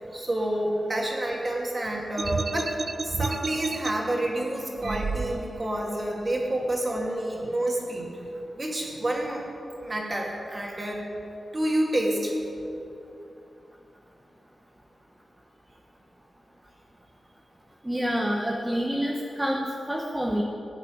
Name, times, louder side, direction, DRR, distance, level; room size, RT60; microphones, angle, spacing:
voice 1, 0.0-2.8 3.0-8.1 8.6-9.4 9.8-11.1 11.5-12.4, right 1 dB, 25° right, -1 dB, 2.5 m, -28 dB
sound 1, 2.2-3.9 4.8-5.7, right 4 dB, 45° right, 0.5 m, -31 dB
voice 2, 17.8-20.4, equal, 10° right, -1 dB, 1.0 m, -27 dB
18.0 x 6.7 x 9.6 m, 2.8 s
wide cardioid pair, 170°, 0 cm